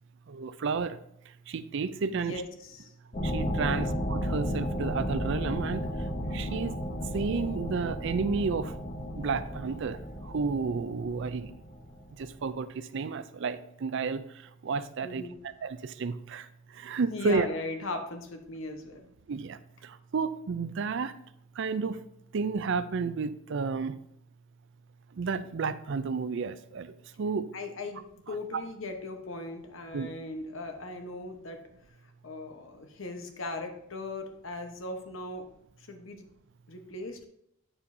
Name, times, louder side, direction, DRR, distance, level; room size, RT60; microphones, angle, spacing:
voice 1, 0.3-1.0 1.5-2.4 3.2-5.9 6.3-6.8 7.1-11.5 12.2-14.2 14.6-16.5 16.7-17.5 19.3-21.1 21.6-22.0 22.3-24.0 25.2-27.5 28.3-28.6 29.9-30.1, right 5 dB, 65° right, 13 dB, 0.4 m, -32 dB
voice 2, 2.1-2.9 3.6-3.8 15.0-15.4 17.1-19.1 27.5-31.6 32.2-35.5 35.8-36.3 36.7-37.3, left 2 dB, 75° left, 5 dB, 1.1 m, -38 dB
sound 1, 3.1-12.3, equal, 40° left, 1.2 m, -34 dB
8.8 x 6.9 x 2.7 m, 0.75 s
head